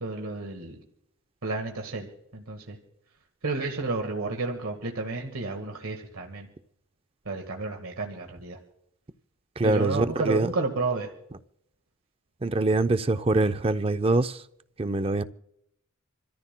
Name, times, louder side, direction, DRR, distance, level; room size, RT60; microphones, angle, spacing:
voice 1, 0.0-0.8 1.4-2.8 3.4-6.5 7.2-8.6 9.6-11.1, right 3 dB, 90° right, 1.6 m, -31 dB
voice 2, 9.6-10.5 12.4-14.4 14.8-15.2, right 2 dB, 25° right, 0.4 m, -24 dB
27.5 x 14.0 x 2.2 m
head